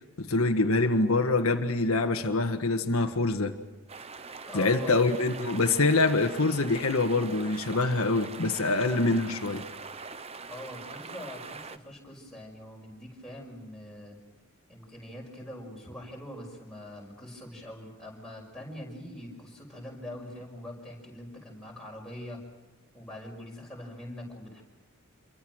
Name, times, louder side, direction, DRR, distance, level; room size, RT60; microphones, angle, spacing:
voice 1, 0.2-3.5 4.5-9.6, left 3 dB, 75° left, 5 dB, 1.5 m, -25 dB
sound 1, 3.9-11.8, right 4 dB, 25° right, 0.9 m, -42 dB
voice 2, 4.5-5.0 10.5-14.2 14.7-22.4 22.9-24.6, left 1 dB, ahead, -2 dB, 5.9 m, -43 dB
27.0 x 23.5 x 6.3 m, 1.1 s
head